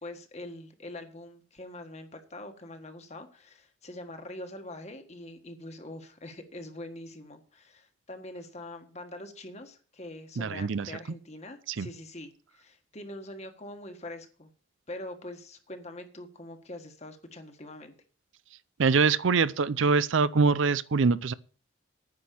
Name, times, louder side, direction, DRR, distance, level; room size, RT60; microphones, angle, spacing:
voice 1, 0.0-14.5 14.9-17.9, left 1 dB, 35° left, 1.5 m, -44 dB
voice 2, 10.4-10.9 11.7-11.9 18.8-21.3, right 4 dB, 70° right, 0.5 m, -24 dB
9.7 x 6.1 x 8.5 m
head